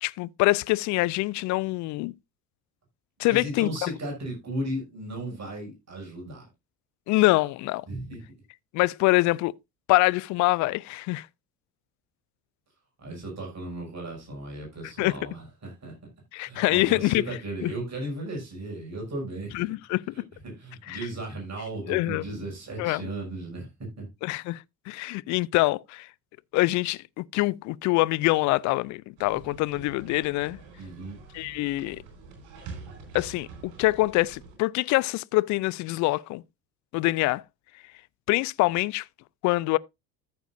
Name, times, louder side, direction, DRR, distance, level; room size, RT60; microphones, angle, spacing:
voice 1, 0.0-2.1 3.2-3.9 7.1-7.8 8.7-9.5 9.9-11.3 15.0-15.2 16.3-17.7 19.5-20.1 20.9-21.0 21.9-22.2 22.8-23.1 24.2-26.1 26.5-30.6 31.3-32.0 33.1-36.4 36.9-37.4 38.3-39.0 39.4-39.8, left 20 dB, 40° left, 0.4 m, -25 dB
voice 2, 3.2-6.5 7.9-8.2 13.0-15.9 16.4-19.7 20.4-24.1 30.7-31.2, right 1 dB, 30° right, 5.8 m, -36 dB
sound 1, 29.2-34.6, right 4 dB, 60° right, 4.6 m, -45 dB
13.5 x 6.8 x 2.6 m
figure-of-eight pair, 55°, 50 cm